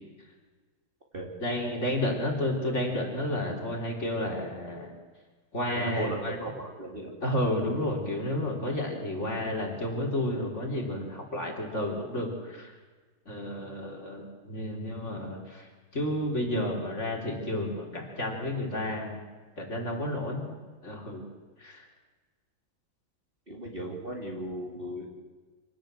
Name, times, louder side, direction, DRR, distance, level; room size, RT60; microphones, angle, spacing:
voice 1, 1.4-4.9 5.5-6.4 7.2-12.7 13.3-19.2 19.6-20.4 20.8-21.2 21.6-21.9, left 1 dB, 35° left, 0 dB, 4.2 m, -31 dB
voice 2, 5.7-7.1 23.5-25.1, right 1 dB, 25° right, -1 dB, 2.9 m, -36 dB
26.5 x 19.0 x 7.8 m, 1.4 s
omnidirectional pair, 2.2 m